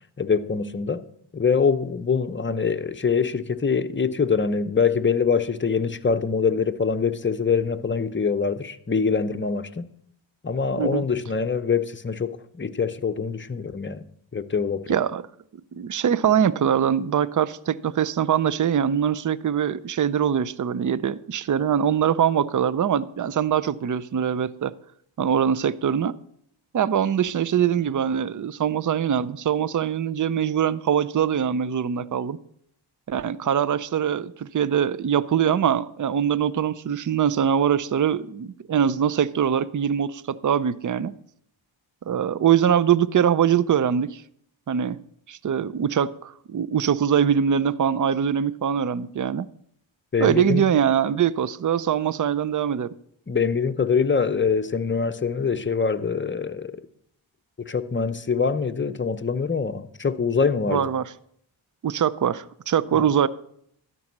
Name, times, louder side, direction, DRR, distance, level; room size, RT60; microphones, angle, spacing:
voice 1, 0.2-1.0 1.3-9.9 10.4-14.1 14.3-15.0 50.1-50.7 53.3-56.8 57.6-60.8 62.9-63.1, left 5 dB, 25° left, 0.7 m, -24 dB
voice 2, 14.9-15.2 15.7-24.7 25.2-26.2 26.7-32.4 33.1-41.2 42.1-44.2 44.7-45.0 45.3-49.5 50.2-52.9 60.7-61.1 61.8-63.3, right 8 dB, 40° right, 0.6 m, -23 dB
12.5 x 5.4 x 7.3 m
cardioid pair, 50°, 49 cm